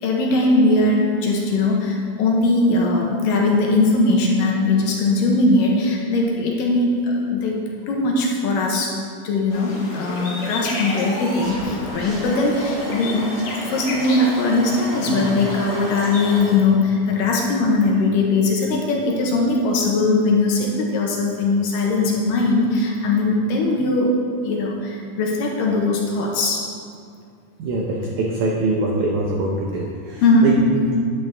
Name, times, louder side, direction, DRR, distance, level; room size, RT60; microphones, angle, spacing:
voice 1, 0.0-7.6 7.9-8.9 9.2-24.1 24.4-26.6 30.2-30.5, left 2 dB, 75° left, -1 dB, 2.3 m, -20 dB
sound 1, 9.5-16.3, left 2 dB, 60° left, 1.5 m, -34 dB
sound 2, 9.5-16.6, equal, 55° right, 3.4 m, -34 dB
voice 2, 27.6-30.9, right 2 dB, 85° right, -1 dB, 1.7 m, -23 dB
9.5 x 9.1 x 3.4 m, 2.3 s
omnidirectional pair, 4.5 m